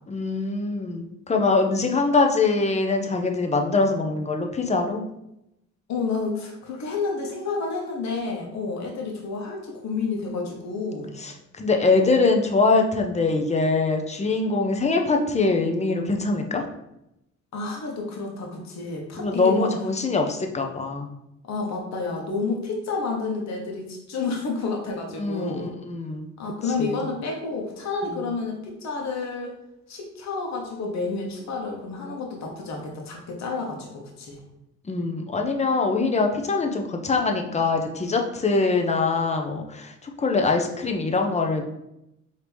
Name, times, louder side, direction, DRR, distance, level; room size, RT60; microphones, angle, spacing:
voice 1, 0.1-5.0 11.2-16.7 19.1-21.1 25.2-26.3 26.8-27.0 34.8-41.6, left 3 dB, 20° left, 3 dB, 0.6 m, -23 dB
voice 2, 5.9-11.1 17.5-19.7 21.5-25.7 26.4-29.5 29.9-34.4, left 4 dB, 65° left, 0 dB, 1.1 m, -30 dB
4.6 x 2.9 x 3.4 m, 0.85 s
cardioid pair, 90°, 30 cm